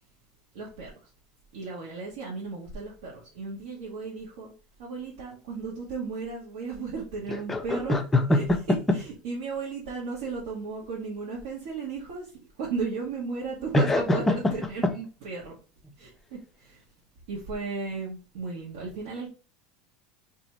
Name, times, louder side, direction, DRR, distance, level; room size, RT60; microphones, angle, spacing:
voice 1, 0.5-0.9 1.5-4.5 4.8-7.9 9.2-12.2 12.6-14.2 14.5-15.5 16.0-16.4 17.3-19.3, right 4 dB, 80° right, 1.1 m, -35 dB
voice 2, 7.3-9.0 13.7-14.9, left 1 dB, 5° left, 0.3 m, -24 dB
2.8 x 2.5 x 4.2 m
cardioid pair, 180°, 3 cm